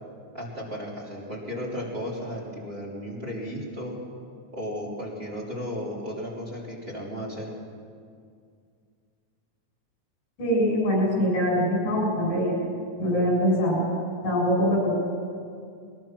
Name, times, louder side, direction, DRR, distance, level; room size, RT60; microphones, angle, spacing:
voice 1, 0.3-4.0 4.5-7.5, equal, 20° right, -5 dB, 3.2 m, -34 dB
voice 2, 10.4-12.6 13.0-13.8 14.2-15.0, equal, 90° left, -3 dB, 9.5 m, -23 dB
22.0 x 21.0 x 6.0 m, 2.3 s
omnidirectional pair, 3.5 m